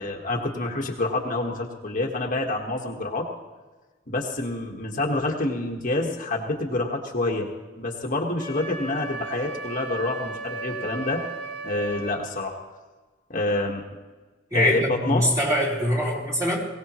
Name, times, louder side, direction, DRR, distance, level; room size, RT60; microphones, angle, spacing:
voice 1, 0.0-3.3 4.1-7.5 7.8-11.2 11.6-12.5 13.3-13.8 14.5-15.2, left 2 dB, 40° left, 0 dB, 1.6 m, -27 dB
Wind instrument woodwind instrument, 8.4-12.2, right 3 dB, 65° right, 5.8 m, -35 dB
voice 2, 14.5-16.7, left 1 dB, 15° right, -3 dB, 3.0 m, -23 dB
22.0 x 17.0 x 3.1 m, 1.3 s
head